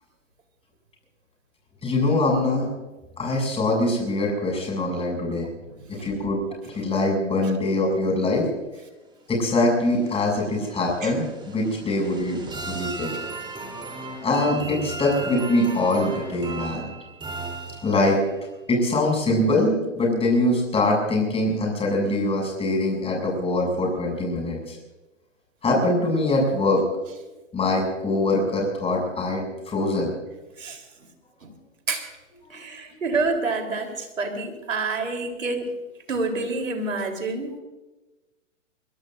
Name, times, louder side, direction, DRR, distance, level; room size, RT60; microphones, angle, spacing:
voice 1, 1.8-2.7 3.2-5.5 6.0-6.4 6.7-8.5 9.3-13.1 14.2-16.9 17.8-18.2 18.7-24.8 25.6-26.8 27.5-30.1 32.4-32.6, left 2 dB, 15° left, 0 dB, 7.4 m, -23 dB
sound 1, 9.3-18.2, right 3 dB, 10° right, 3.5 m, -36 dB
voice 2, 32.5-35.7 36.1-37.5, right 3 dB, 85° right, 5 dB, 4.0 m, -28 dB
24.5 x 22.0 x 2.7 m, 1.1 s
hypercardioid pair, 120°, 38 cm